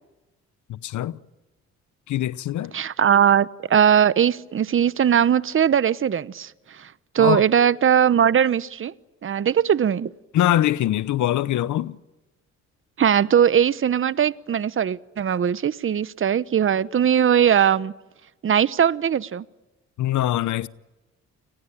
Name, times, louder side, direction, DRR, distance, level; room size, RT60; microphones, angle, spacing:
voice 1, 0.7-1.2 2.1-2.7 7.2-7.4 10.3-12.0 20.0-20.7, left 13 dB, 75° left, 1.0 m, -23 dB
voice 2, 2.7-8.9 9.2-10.1 13.0-17.9 18.4-19.4, right 8 dB, 45° right, 1.0 m, -20 dB
30.0 x 20.5 x 8.9 m
cardioid pair, 90°, 30 cm